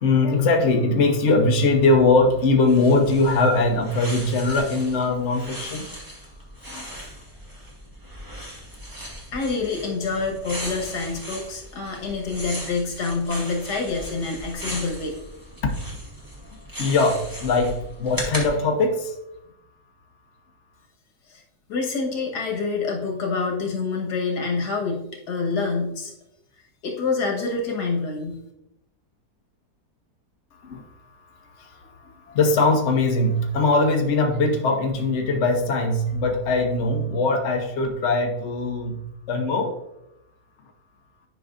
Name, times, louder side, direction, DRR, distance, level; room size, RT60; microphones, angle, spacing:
voice 1, 0.0-5.9 6.7-6.9 15.6-15.7 16.8-19.1 30.7-30.8 32.3-39.0 39.3-39.7, left 3 dB, 50° left, 3 dB, 1.1 m, -21 dB
sound 1, 2.7-18.5, equal, 15° right, 1.3 m, -38 dB
voice 2, 9.3-15.2 21.3-21.4 21.7-26.1 26.8-28.4, left 4 dB, 85° left, 1 dB, 1.9 m, -27 dB
10.5 x 5.4 x 2.5 m, 0.86 s
omnidirectional pair, 1.7 m